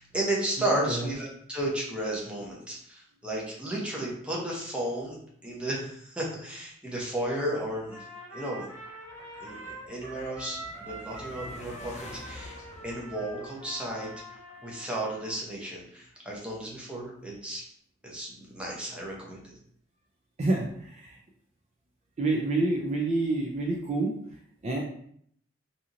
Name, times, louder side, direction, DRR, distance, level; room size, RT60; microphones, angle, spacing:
voice 1, 0.0-5.2 5.4-8.0 8.3-8.7 9.4-12.6 12.8-14.1 14.6-17.6 18.0-19.5, right 1 dB, 5° right, -4 dB, 0.7 m, -33 dB
voice 2, 0.6-1.1 20.4-21.2 22.2-24.1 24.6-24.8, right 2 dB, 35° right, -1 dB, 0.4 m, -28 dB
Trumpet, 7.9-15.4, right 1 dB, 85° right, 1.4 m, -44 dB
sound 1, 8.9-14.3, left 3 dB, 35° left, 0.3 m, -49 dB
2.8 x 2.7 x 2.5 m, 0.65 s
head